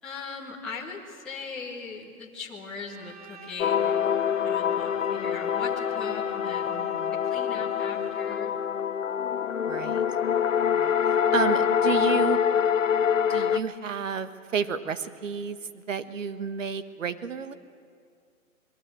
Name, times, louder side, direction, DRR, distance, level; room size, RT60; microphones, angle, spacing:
voice 1, 0.0-6.7 7.2-8.6, left 4 dB, ahead, -7 dB, 1.1 m, -40 dB
Bowed string instrument, 2.9-8.7, right 4 dB, 25° right, 1.1 m, -50 dB
sound 1, 3.6-13.6, left 8 dB, 60° left, 0.8 m, -25 dB
voice 2, 6.7-7.2 9.7-10.0 10.7-10.9 11.3-12.4 13.3-17.5, right 6 dB, 60° right, 11 dB, 1.6 m, -31 dB
27.0 x 22.0 x 7.9 m, 2.2 s
hypercardioid pair, 160°, 44 cm